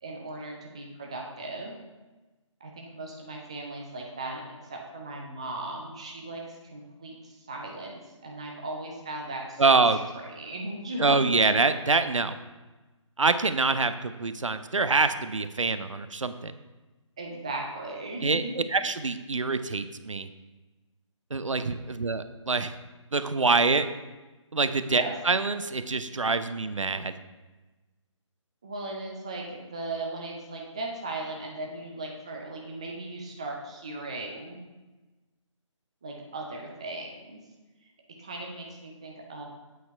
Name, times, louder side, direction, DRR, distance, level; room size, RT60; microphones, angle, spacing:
voice 1, 0.0-1.7 2.6-4.4 4.7-11.2 17.2-18.6 24.8-25.1 28.6-34.6 36.0-37.4 38.2-39.4, right 2 dB, 10° right, 0 dB, 0.3 m, -37 dB
voice 2, 9.6-10.0 11.0-12.4 13.2-16.5 18.2-20.3 21.3-22.7 23.1-23.9 24.5-27.1, right 3 dB, 75° right, 11 dB, 0.5 m, -25 dB
8.3 x 4.4 x 4.4 m, 1.2 s
figure-of-eight pair, 150°, 16 cm